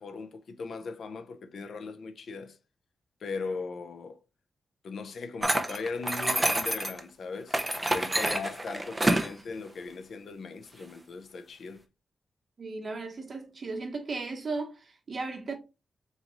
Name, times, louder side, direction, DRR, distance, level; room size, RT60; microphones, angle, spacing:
voice 1, 0.0-2.6 3.2-4.2 4.8-7.6 7.9-11.8, left 4 dB, 70° left, 0.6 m, -38 dB
sound 1, 5.4-7.0 7.5-9.3, right 1 dB, 15° right, 0.6 m, -28 dB
voice 2, 12.6-15.6, right 3 dB, 45° right, 1.1 m, -36 dB
3.8 x 3.0 x 3.9 m
wide cardioid pair, 110°, 0 cm